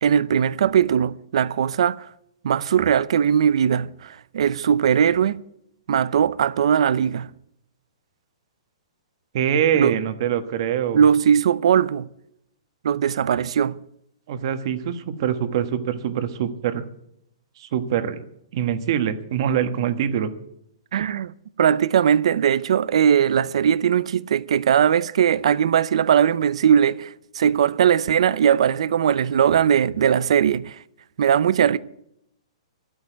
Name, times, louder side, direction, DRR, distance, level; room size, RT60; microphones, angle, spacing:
voice 1, 0.0-2.1 2.4-5.4 5.9-7.3 9.7-9.9 10.9-12.1 12.8-13.8 20.9-30.8 31.2-31.8, right 8 dB, 70° right, 0.6 m, -19 dB
voice 2, 9.3-11.0 14.3-16.8 17.6-18.2 18.5-20.3, right 9 dB, 50° right, 1.3 m, -24 dB
12.0 x 8.7 x 9.0 m
hypercardioid pair, 160°, 3 cm